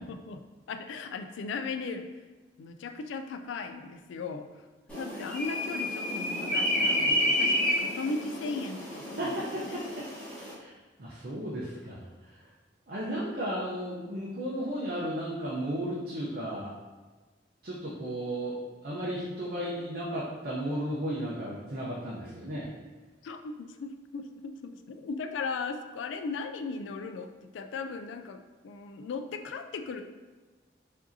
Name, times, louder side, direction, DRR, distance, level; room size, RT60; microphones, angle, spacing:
voice 1, 0.0-2.1 2.6-9.4 9.6-9.8 23.2-30.0, left 4 dB, 80° left, 8 dB, 0.3 m, -37 dB
sound 1, 4.9-10.5, left 1 dB, 5° left, 1.2 m, -30 dB
voice 2, 9.2-9.8 10.4-12.5 12.9-16.7 17.6-18.6 18.8-22.7, right 1 dB, 55° right, -7 dB, 0.6 m, -34 dB
4.8 x 2.7 x 2.6 m, 1.3 s
head